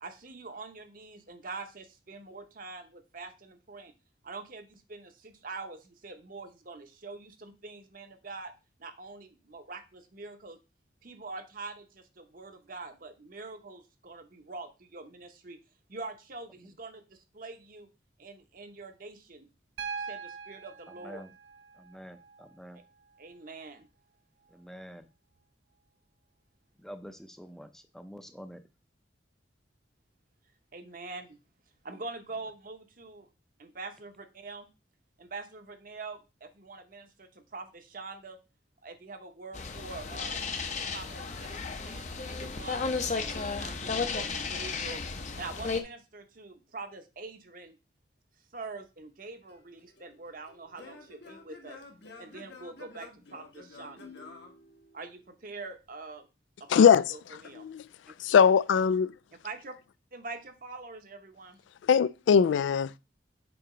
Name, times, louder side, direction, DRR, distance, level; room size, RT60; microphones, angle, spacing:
voice 1, 0.0-3.9 4.2-8.5 8.8-10.6 11.0-15.6 15.9-17.9 18.2-19.5 20.0-21.3 22.7-22.8 23.2-23.9 30.7-31.4 31.8-33.3 33.6-34.7 35.2-38.4 38.8-40.5 40.9-45.0 45.4-47.8 48.5-51.8 52.2-54.1 54.9-56.3 56.6-57.7 58.1-58.2 59.4-59.7 60.1-61.6, right 3 dB, 50° right, 0.9 m, -44 dB
Piano, 19.8-23.8 25.3-25.4, right 5 dB, 70° right, 0.5 m, -43 dB
voice 2, 21.8-22.8 24.5-25.0 26.8-28.6, equal, ahead, 0.5 m, -46 dB
sound 1, 39.5-45.8, left 4 dB, 40° left, 0.7 m, -34 dB
Singing / Plucked string instrument, 49.5-55.4, left 3 dB, 65° left, 1.3 m, -50 dB
voice 3, 56.7-57.0 57.6-57.8 58.2-59.1 61.9-63.0, left 7 dB, 85° left, 0.3 m, -21 dB
7.1 x 3.0 x 4.9 m
head